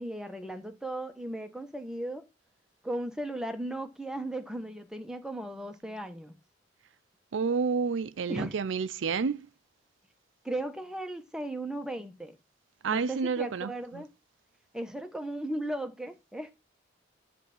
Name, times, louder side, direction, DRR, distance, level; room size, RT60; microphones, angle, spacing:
voice 1, 0.0-2.3 2.8-6.4 8.3-8.6 10.4-12.4 12.9-14.1 14.7-16.5, right 1 dB, 5° right, 1.0 m, -36 dB
voice 2, 7.3-9.5 12.8-14.0, right 5 dB, 85° right, 0.5 m, -30 dB
10.0 x 3.4 x 7.0 m
head